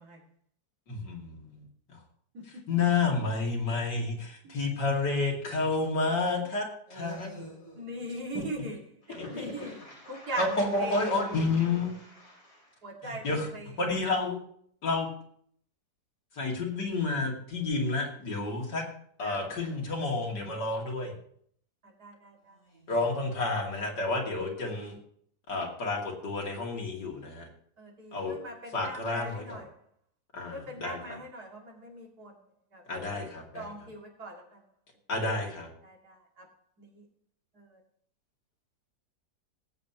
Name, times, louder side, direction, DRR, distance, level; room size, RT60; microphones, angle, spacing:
voice 1, 0.9-1.6 2.7-7.5 8.3-8.4 9.1-9.5 10.3-11.9 13.0-13.5 13.8-14.4 14.8-15.1 16.4-18.8 19.2-21.1 22.9-25.0 25.5-27.5 28.1-28.4 28.7-29.6 30.3-31.2 32.9-33.9 35.1-35.7, left 3 dB, 85° left, 3.1 m, -30 dB
voice 2, 6.9-8.0 9.1-12.8 22.6-22.9, right 1 dB, 45° left, 4.8 m, -49 dB
voice 3, 7.8-8.8 9.3-9.7 10.1-10.5 10.8-11.0 12.8-13.2 13.5-13.6 19.2-19.4 22.0-22.3 27.8-29.6 30.5-32.3 32.7-33.3 33.5-34.4 35.9-36.0 36.8-36.9, right 1 dB, 65° right, 3.0 m, -40 dB
19.0 x 8.4 x 3.0 m
omnidirectional pair, 1.8 m